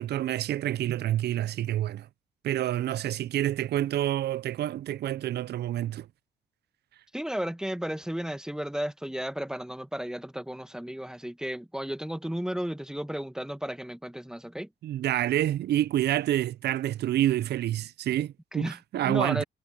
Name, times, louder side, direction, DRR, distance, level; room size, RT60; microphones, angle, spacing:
voice 1, 0.0-2.1 2.4-6.1 14.8-19.4, right 12 dB, 60° right, 0.4 m, -28 dB
voice 2, 7.1-14.7 18.5-19.4, equal, 5° right, 1.0 m, -34 dB
cardioid pair, 90°, 20 cm